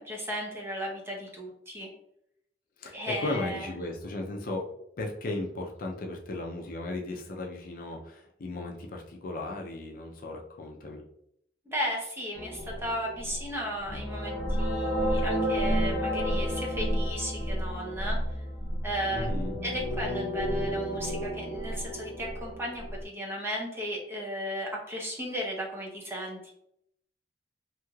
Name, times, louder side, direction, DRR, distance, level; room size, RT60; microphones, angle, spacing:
voice 1, 0.0-1.9 2.9-3.7 11.7-18.2 18.8-19.3 19.6-26.5, equal, 15° right, -2 dB, 0.7 m, -35 dB
voice 2, 2.8-4.7 5.0-11.0 19.1-19.6, left 2 dB, 55° left, 1 dB, 0.5 m, -36 dB
sound 1, 12.3-23.0, equal, 80° left, 0.8 m, -31 dB
3.0 x 2.7 x 2.3 m, 0.72 s
head